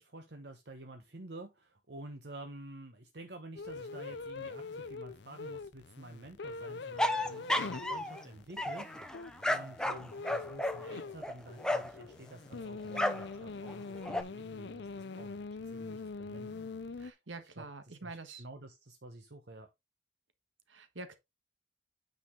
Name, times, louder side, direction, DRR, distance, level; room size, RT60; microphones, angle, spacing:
voice 1, 0.0-15.4 15.7-17.2 17.6-19.7, right 2 dB, 60° right, 1.1 m, -50 dB
sound 1, 3.6-17.1, left 4 dB, 65° left, 0.6 m, -43 dB
sound 2, 7.0-8.2 8.6-12.0 12.9-13.3 13.7-14.2, left 1 dB, 5° left, 0.7 m, -33 dB
voice 2, 17.0-18.4 20.7-21.2, right 3 dB, 85° right, 1.5 m, -46 dB
9.4 x 4.9 x 3.7 m
head